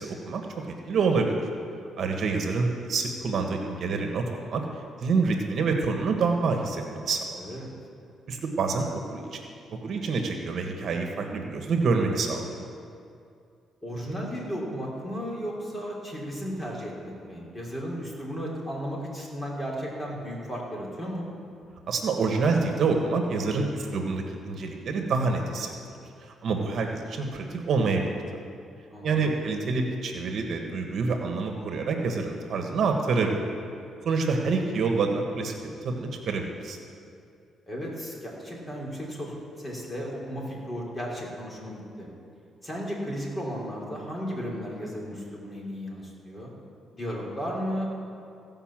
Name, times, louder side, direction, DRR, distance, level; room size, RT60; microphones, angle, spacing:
voice 1, 0.0-1.4 2.0-4.6 5.0-7.4 8.3-9.4 9.8-12.6 21.9-25.7 26.4-28.2 29.0-33.5 34.0-35.5 35.8-36.8, right 4 dB, 60° right, 3 dB, 1.3 m, -27 dB
voice 2, 7.4-7.7 13.8-21.3 28.9-29.4 37.7-42.1 42.6-46.5 46.9-47.9, equal, 20° left, -3 dB, 3.5 m, -34 dB
16.0 x 5.5 x 7.4 m, 2.5 s
cardioid pair, 90°, 0 cm